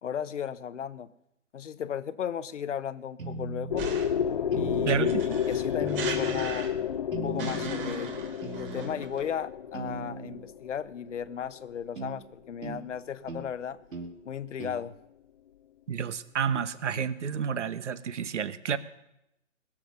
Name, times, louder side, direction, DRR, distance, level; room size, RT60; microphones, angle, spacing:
voice 1, 0.0-1.1 1.5-3.9 4.5-6.7 7.2-8.1 8.5-13.8 14.2-15.0, left 8 dB, 65° left, 14 dB, 1.0 m, -35 dB
sound 1, 3.2-3.9 4.5-5.2 5.8-6.5 7.1-7.8 8.4-9.1 9.7-10.4 12.0-12.2 12.6-12.8 13.3-13.5 13.9-14.1 14.6-14.8, right 3 dB, 80° right, 2.6 m, -38 dB
sound 2, 3.7-11.5, left 8 dB, 35° left, 0.6 m, -31 dB
sound 3, 3.8-4.3 5.0-7.0 7.4-9.3, right 5 dB, 40° right, 4.0 m, -38 dB
voice 2, 4.9-5.2 15.9-18.8, right 7 dB, 65° right, 14 dB, 1.1 m, -30 dB
22.0 x 7.5 x 6.5 m, 0.86 s
hypercardioid pair, 150°, 39 cm